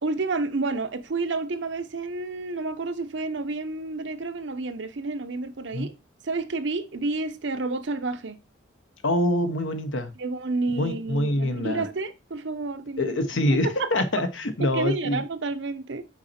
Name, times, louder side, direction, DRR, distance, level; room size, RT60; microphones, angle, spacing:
voice 1, 0.0-5.9 6.2-8.4 10.2-13.2 13.5-13.9 14.6-16.1, right 3 dB, 70° right, 0.7 m, -30 dB
voice 2, 9.0-10.1 10.8-11.8 13.0-15.2, left 1 dB, 80° left, 1.1 m, -25 dB
6.1 x 4.2 x 4.2 m
head